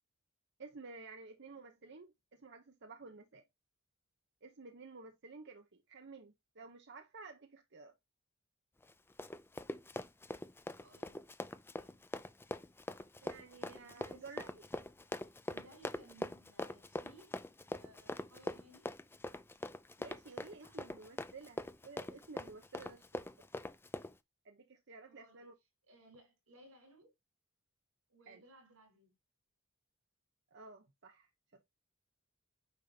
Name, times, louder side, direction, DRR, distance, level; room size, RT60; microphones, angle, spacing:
voice 1, 0.6-3.4 4.4-7.9 13.2-14.6 20.0-23.2 24.4-25.5 28.3-28.4 30.5-31.7, right 4 dB, 55° right, 0.9 m, -53 dB
Run, 8.8-24.1, left 1 dB, 10° left, 0.4 m, -43 dB
voice 2, 10.7-11.2 11.7-12.0 13.7-14.4 15.0-17.4 17.7-18.9 20.6-20.8 25.1-25.5 25.9-27.1 28.1-29.1, right 1 dB, 90° right, 4.5 m, -62 dB
9.2 x 5.1 x 2.8 m
head